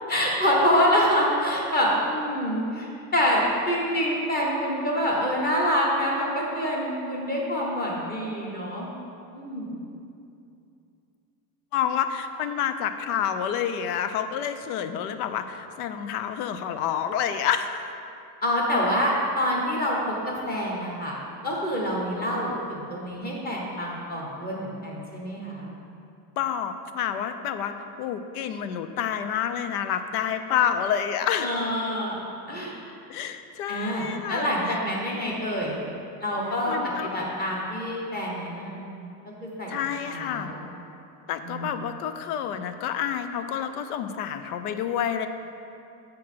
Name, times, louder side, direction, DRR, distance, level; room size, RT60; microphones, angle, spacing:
voice 1, 0.1-8.9 9.3-9.8 18.4-21.2 21.4-25.7 31.4-32.7 33.7-35.8 36.2-36.8 37.0-39.0 39.4-39.7 40.0-40.6 41.4-41.7, equal, 20° left, -3 dB, 1.1 m, -26 dB
voice 2, 11.7-17.8 26.4-31.5 33.1-34.8 36.7-37.2 39.7-40.5 41.3-45.3, left 9 dB, 70° left, 9 dB, 0.6 m, -28 dB
7.5 x 4.5 x 5.6 m, 2.6 s
supercardioid pair, 150°, 47 cm